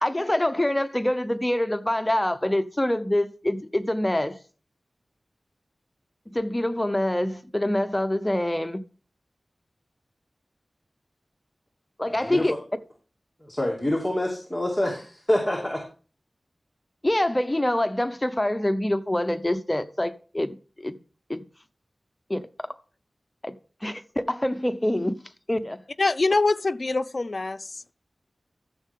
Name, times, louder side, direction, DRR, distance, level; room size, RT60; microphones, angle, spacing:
voice 1, 0.0-4.4 6.3-8.8 12.0-12.5 17.0-21.0 21.3-21.4 22.3-22.5 23.4-25.2 25.5-25.8, left 1 dB, 20° left, 0.8 m, -25 dB
voice 2, 12.1-12.5 13.4-15.8, left 1 dB, ahead, 2.6 m, -26 dB
voice 3, 26.0-27.6, left 3 dB, 50° left, 0.5 m, -23 dB
13.5 x 7.4 x 3.7 m
wide cardioid pair, 60°, 0 cm